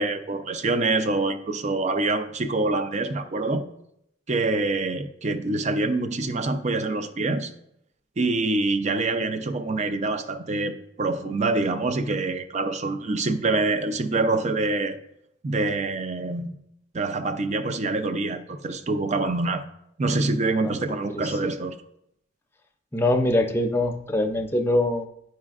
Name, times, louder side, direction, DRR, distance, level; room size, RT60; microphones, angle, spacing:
voice 1, 0.0-3.6 4.3-7.5 8.2-15.0 15.4-16.6 16.9-19.6 20.0-21.7, right 2 dB, 35° right, 0.5 m, -25 dB
voice 2, 20.6-21.3 22.9-25.1, left 1 dB, 15° left, 0.5 m, -24 dB
10.5 x 4.3 x 2.4 m
head